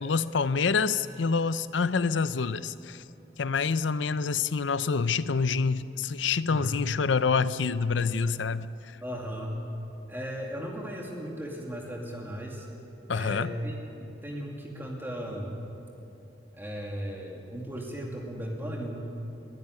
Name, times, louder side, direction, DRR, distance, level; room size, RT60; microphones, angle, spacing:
voice 1, 0.0-3.0 3.4-8.7 13.1-13.5, left 5 dB, 90° left, 15 dB, 0.6 m, -27 dB
voice 2, 6.5-6.8 9.0-9.6 10.1-12.7 13.1-15.6 16.5-19.0, equal, 10° right, -1 dB, 2.5 m, -36 dB
21.0 x 13.5 x 9.7 m, 2.8 s
head